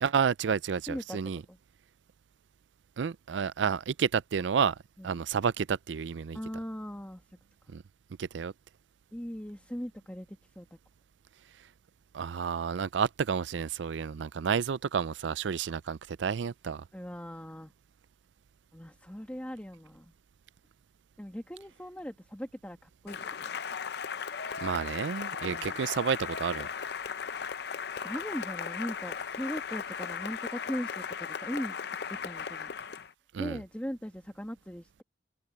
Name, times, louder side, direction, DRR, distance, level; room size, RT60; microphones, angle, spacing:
voice 1, 0.0-1.4 3.0-4.8 5.0-6.4 7.7-7.8 8.2-8.5 12.1-16.8 24.6-26.7 33.3-33.6, right 6 dB, 75° right, 0.4 m, -30 dB
voice 2, 0.9-1.2 1.5-1.6 5.0-5.2 6.3-7.2 9.1-10.7 16.9-17.7 18.7-20.1 21.2-23.6 25.5-25.8 28.0-31.8 32.1-32.7 33.4-35.0, equal, 10° left, 1.7 m, -39 dB
Cheering / Applause, 23.1-33.1, left 6 dB, 60° left, 0.6 m, -37 dB
head